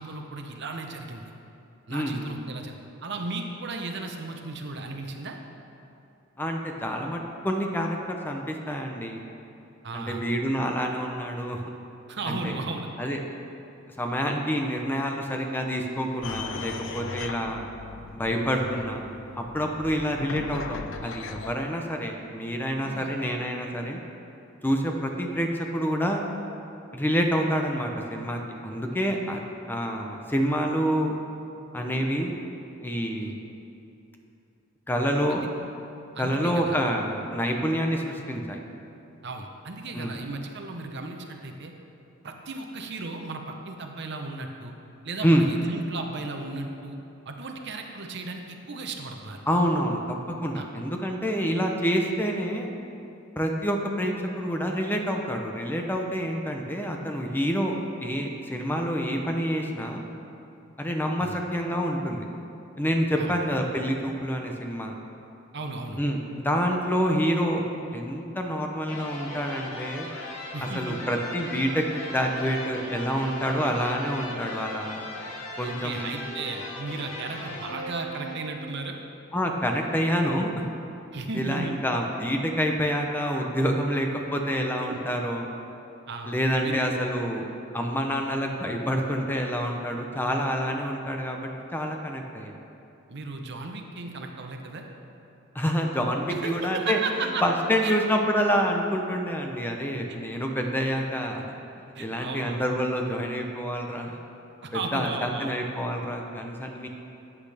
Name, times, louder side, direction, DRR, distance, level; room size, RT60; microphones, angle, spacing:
voice 1, 0.0-1.3 1.9-5.4 9.8-10.2 12.1-12.9 18.5-18.8 22.8-23.1 33.2-33.3 35.3-35.5 36.1-36.8 39.2-41.7 42.2-44.7 45.0-47.0 47.3-49.4 50.5-50.6 61.2-61.4 63.2-63.3 65.5-66.0 70.5-71.0 75.6-79.0 81.1-81.7 84.9-85.0 86.1-86.4 86.6-86.9 93.1-94.8 96.3-97.4 97.8-97.9 100.1-100.2 101.9-102.8 104.6-105.6, right 3 dB, 60° right, 3 dB, 0.9 m, -35 dB
voice 2, 1.9-2.3 6.4-9.2 9.9-11.6 12.2-12.6 13.0-13.2 14.0-17.7 18.1-19.1 19.3-24.0 24.6-26.2 26.9-29.4 29.7-31.2 31.7-32.4 32.8-33.4 34.9-35.4 36.2-38.6 39.9-40.1 45.2-45.5 49.5-52.7 53.4-57.7 58.0-60.0 60.8-62.2 62.8-65.0 66.0-67.6 67.9-70.1 70.7-75.0 75.6-76.1 79.3-80.7 81.3-85.5 86.3-87.5 87.7-92.6 95.5-97.0 97.4-101.4 102.0-104.2 104.9-106.9, equal, 10° left, 2 dB, 0.7 m, -27 dB
sound 1, 16.2-21.5, left 5 dB, 65° left, 0.5 m, -38 dB
sound 2, 68.8-78.8, left 1 dB, 90° left, 1.8 m, -38 dB
13.5 x 8.5 x 3.4 m, 2.8 s
head